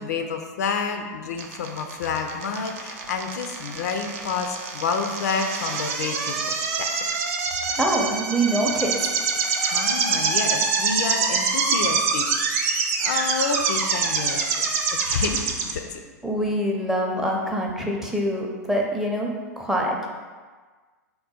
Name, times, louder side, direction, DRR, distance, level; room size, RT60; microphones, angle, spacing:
voice 1, 0.0-6.9 7.7-7.8 9.4-12.3 13.0-16.0, left 5 dB, 65° left, 5 dB, 0.4 m, -29 dB
sound 1, 1.4-15.7, right 5 dB, 55° right, 0.5 m, -25 dB
voice 2, 7.8-9.1 16.2-20.1, right 1 dB, 5° right, -1 dB, 0.5 m, -25 dB
3.6 x 2.2 x 4.1 m, 1.4 s
hypercardioid pair, 100°, 9 cm